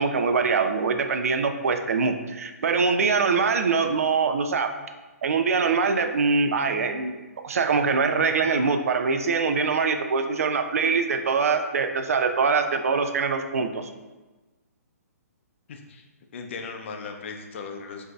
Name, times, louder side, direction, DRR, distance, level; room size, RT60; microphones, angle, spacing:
voice 1, 0.0-4.7 5.2-7.2 7.4-13.9, right 5 dB, 60° right, 7 dB, 0.4 m, -23 dB
voice 2, 15.7-16.0 16.3-18.0, left 5 dB, 45° left, 3 dB, 0.5 m, -37 dB
6.0 x 2.7 x 2.3 m, 1.2 s
figure-of-eight pair, 130°, 9 cm